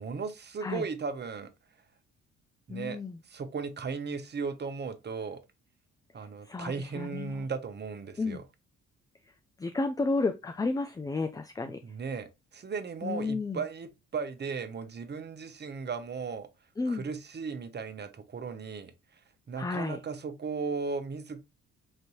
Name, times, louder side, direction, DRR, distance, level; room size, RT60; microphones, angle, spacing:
voice 1, 0.0-1.5 2.7-3.0 3.3-5.4 6.1-8.4 11.8-16.5 16.9-18.9 19.5-21.4, right 5 dB, 35° right, 0.8 m, -36 dB
voice 2, 2.7-3.2 6.5-7.5 8.2-8.4 9.6-11.8 13.0-13.6 16.8-17.1 19.6-20.0, left 3 dB, 10° left, 0.3 m, -32 dB
5.1 x 2.6 x 3.0 m
cardioid pair, 90°, 30 cm